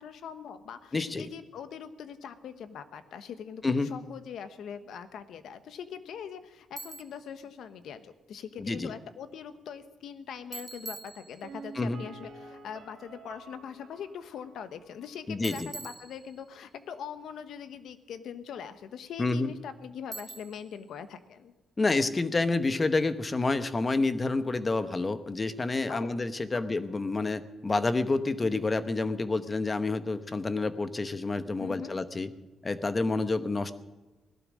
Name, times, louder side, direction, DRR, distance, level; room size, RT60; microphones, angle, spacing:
voice 1, 0.0-21.5 25.9-26.2 26.5-26.6 31.6-31.9, left 7 dB, 75° left, 11 dB, 1.1 m, -42 dB
voice 2, 0.9-1.3 3.6-3.9 8.6-8.9 11.7-12.0 15.3-15.7 19.2-19.5 21.8-32.3 32.6-33.7, left 3 dB, 25° left, 12 dB, 0.9 m, -28 dB
Bicycle, 6.8-7.3 10.5-11.7 15.4-16.7 20.1-20.8, right 3 dB, 20° right, 0.5 m, -44 dB
Piano, 11.4-15.2 15.5-15.6, right 4 dB, 70° right, 1.7 m, -49 dB
17.5 x 12.0 x 6.3 m, 1.2 s
cardioid pair, 115°, 0 cm